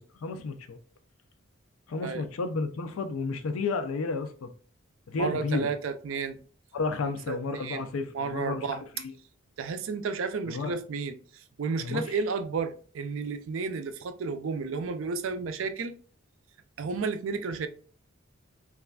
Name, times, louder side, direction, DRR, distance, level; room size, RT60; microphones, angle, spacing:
voice 1, 0.1-0.8 1.9-4.5 5.1-5.7 6.7-9.1 10.5-10.7 11.8-12.0, left 4 dB, 85° left, 0.4 m, -32 dB
voice 2, 5.2-6.4 7.0-7.9 8.1-8.8 9.6-15.9 16.8-17.7, right 4 dB, 70° right, 0.4 m, -32 dB
3.2 x 2.4 x 2.3 m
head